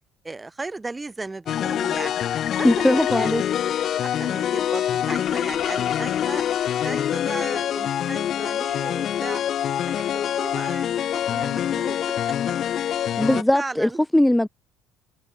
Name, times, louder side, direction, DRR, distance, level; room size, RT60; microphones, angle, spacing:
voice 1, 0.2-2.1 2.5-3.3 3.8-6.4 6.7-9.4 9.9-12.3 13.0-14.0, right 3 dB, 20° right, 1.9 m, -36 dB
sound 1, 1.5-13.4, left 10 dB, 55° left, 0.6 m, -25 dB
voice 2, 2.6-3.4 13.2-14.5, left 1 dB, 5° left, 0.8 m, -19 dB
hypercardioid pair, 65°, 0 cm